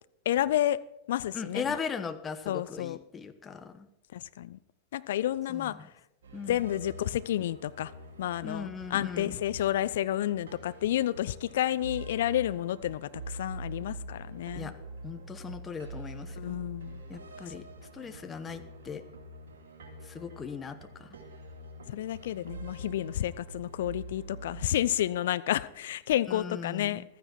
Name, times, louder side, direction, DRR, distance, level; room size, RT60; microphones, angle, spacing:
voice 1, 0.3-0.8 1.1-1.8 2.5-3.0 4.1-4.6 4.9-5.8 6.5-7.9 8.2-14.7 16.4-17.0 21.9-27.0, left 12 dB, 60° left, 0.5 m, -30 dB
voice 2, 1.3-3.9 5.5-5.9 6.3-6.6 8.4-9.4 14.5-14.7 15.0-16.6 17.1-17.6 17.9-19.0 20.0-21.1 26.3-27.0, left 6 dB, 20° left, 1.1 m, -38 dB
sound 1, 6.2-25.1, right 1 dB, 60° right, 2.5 m, -45 dB
15.5 x 13.0 x 4.4 m
figure-of-eight pair, 90°, 0 cm